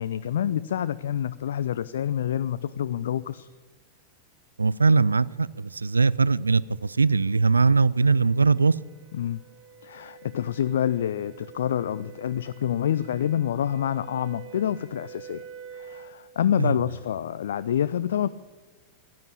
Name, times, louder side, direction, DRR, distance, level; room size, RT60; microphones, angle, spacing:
voice 1, 0.0-3.5 9.1-9.4 9.8-15.4 15.7-18.3, left 10 dB, 60° left, 13 dB, 0.4 m, -27 dB
voice 2, 4.6-8.7 16.6-16.7, right 4 dB, 75° right, 20 dB, 0.4 m, -21 dB
sound 1, 6.3-16.2, right 7 dB, 50° right, 1.8 m, -48 dB
15.5 x 10.5 x 8.6 m, 1.3 s
figure-of-eight pair, 90°, 0 cm